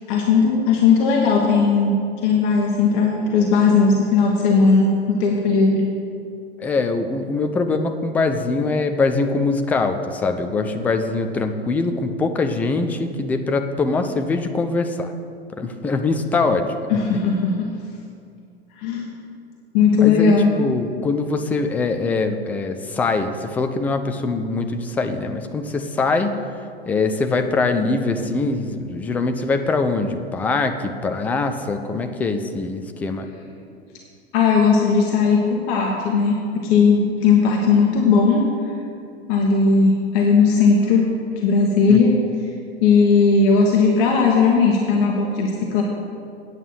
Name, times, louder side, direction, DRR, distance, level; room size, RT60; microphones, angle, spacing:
voice 1, 0.1-5.9 16.9-17.7 18.8-19.1 19.7-20.5 34.3-38.5 39.3-41.1 41.4-42.2 42.8-45.8, left 5 dB, 40° left, 0 dB, 1.2 m, -17 dB
voice 2, 6.6-15.1 15.5-16.7 20.0-26.3 26.9-33.3 41.9-42.0, left 3 dB, 5° left, 7 dB, 0.3 m, -23 dB
8.9 x 8.0 x 6.4 m, 2.4 s
figure-of-eight pair, 90°, 32 cm